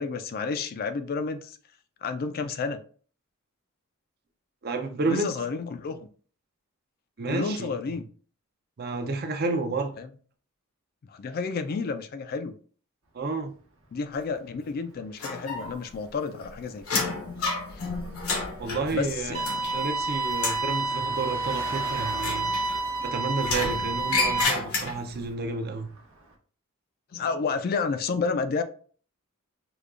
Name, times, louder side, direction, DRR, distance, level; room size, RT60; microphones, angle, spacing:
voice 1, 0.0-1.6 2.0-2.8 5.1-6.1 7.3-8.1 10.0-10.1 11.1-12.5 13.9-17.1 17.7-17.9 18.9-19.9 27.1-28.6, left 4 dB, 45° left, 0.3 m, -31 dB
voice 2, 4.6-5.4 7.2-8.0 8.8-9.9 13.1-13.5 18.6-19.3 19.7-22.5 23.0-25.9, right 3 dB, 45° right, 0.5 m, -30 dB
Car passing by, 13.1-26.4, right 2 dB, 65° right, 0.9 m, -46 dB
sound 1, 15.2-16.0 16.2-20.0 20.3-20.7 22.1-23.0 23.4-25.2, left 3 dB, 85° left, 1.0 m, -31 dB
sound 2, 19.3-24.4, right 2 dB, 90° right, 0.8 m, -29 dB
5.0 x 2.2 x 2.4 m
head